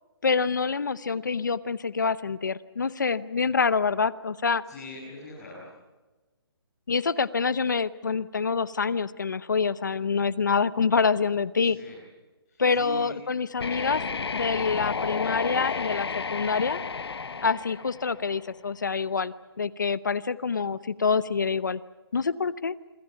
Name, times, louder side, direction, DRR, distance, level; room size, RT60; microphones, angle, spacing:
voice 1, 0.2-4.6 6.9-11.8 12.6-14.0 14.3-16.8 17.4-21.8 22.1-22.7, left 5 dB, 50° left, 17 dB, 0.8 m, -26 dB
voice 2, 4.6-5.6 11.6-12.0 12.5-13.2 17.1-17.5, left 2 dB, 15° left, -10 dB, 7.2 m, -43 dB
sound 1, 13.6-18.5, left 5 dB, 80° left, 1.0 m, -32 dB
26.5 x 26.5 x 5.8 m, 1.2 s
hypercardioid pair, 180°, 13 cm